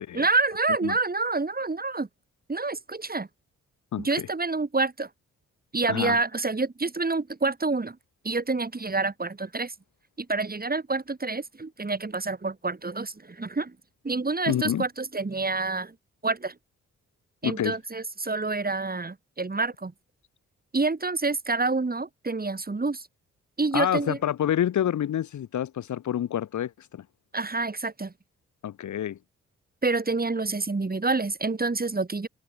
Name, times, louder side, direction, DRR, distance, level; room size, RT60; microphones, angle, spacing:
voice 1, 0.1-2.1 2.5-3.3 4.0-5.1 5.7-8.0 8.2-9.7 10.2-13.8 14.0-15.9 16.2-16.5 17.4-19.9 20.7-23.1 23.6-24.2 27.3-28.1 29.8-32.3, right 3 dB, 30° right, 5.1 m, -27 dB
voice 2, 14.5-14.8 17.4-17.7 23.7-27.0 28.6-29.2, left 10 dB, 70° left, 1.3 m, -27 dB
supercardioid pair, 50°, 31 cm